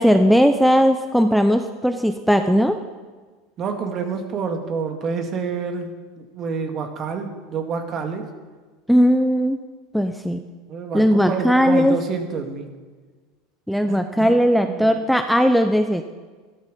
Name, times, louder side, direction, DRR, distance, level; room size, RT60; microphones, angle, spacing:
voice 1, 0.0-2.8 8.9-9.6 9.9-10.4 10.9-12.0 13.7-16.0, equal, ahead, 8 dB, 0.8 m, -18 dB
voice 2, 3.6-8.2 10.7-12.7 13.9-14.4 14.6-14.9, right 5 dB, 40° right, 5 dB, 2.2 m, -28 dB
13.5 x 12.5 x 5.4 m, 1.4 s
hypercardioid pair, 90°, 0 cm